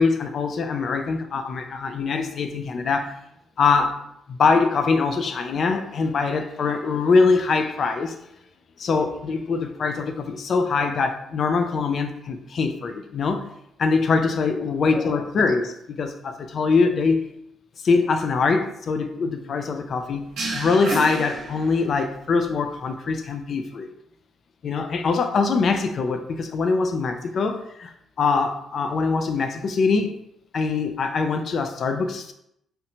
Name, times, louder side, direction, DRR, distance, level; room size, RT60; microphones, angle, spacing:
voice 1, 0.0-3.1 3.6-4.0 4.3-8.2 8.8-13.4 13.8-17.2 17.8-20.2 20.5-23.9 24.6-27.9 28.2-30.2 30.5-32.3, left 4 dB, 55° left, 7 dB, 0.3 m, -23 dB
sound 1, 20.4-22.1, right 1 dB, 70° right, 0.8 m, -30 dB
2.7 x 2.1 x 2.8 m, 0.78 s
cardioid pair, 90°, 0 cm